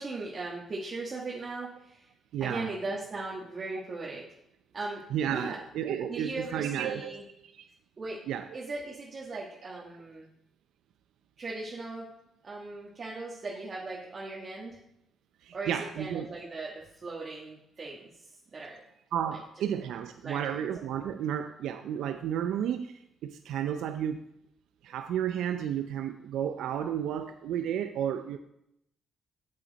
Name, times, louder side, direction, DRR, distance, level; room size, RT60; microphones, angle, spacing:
voice 1, 0.0-2.1 2.4-4.2 4.7-5.6 6.1-7.2 8.0-8.2 8.5-10.3 11.4-12.1 12.4-14.8 15.5-16.7 17.0-18.8 20.2-20.6, right 3 dB, 40° right, -4 dB, 1.5 m, -38 dB
voice 2, 2.3-2.7 5.1-7.2 7.5-7.6 8.3-8.5 9.3-9.4 15.4-16.3 19.1-24.2 24.8-28.4, right 9 dB, 80° right, 8 dB, 0.5 m, -32 dB
7.6 x 7.4 x 4.0 m, 0.80 s
cardioid pair, 90°, 0 cm